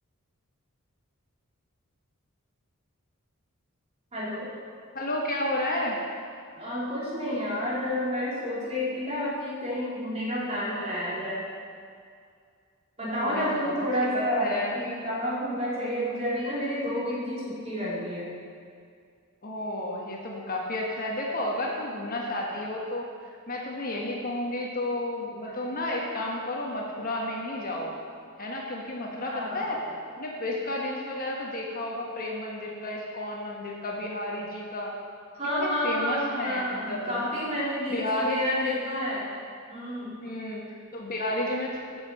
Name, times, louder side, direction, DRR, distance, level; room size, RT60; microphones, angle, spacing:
voice 1, 4.1-4.5 6.5-11.5 13.0-18.3 29.2-29.7 35.4-39.3 39.7-40.2, equal, 30° right, -7 dB, 3.0 m, -30 dB
voice 2, 4.9-6.0 13.0-13.7 14.1-14.7 19.4-23.1 23.5-27.9 28.4-29.8 30.1-34.9 35.6-37.3 37.9-39.0 40.2-42.0, left 1 dB, 40° left, -2 dB, 1.3 m, -32 dB
9.6 x 6.7 x 7.5 m, 2.2 s
head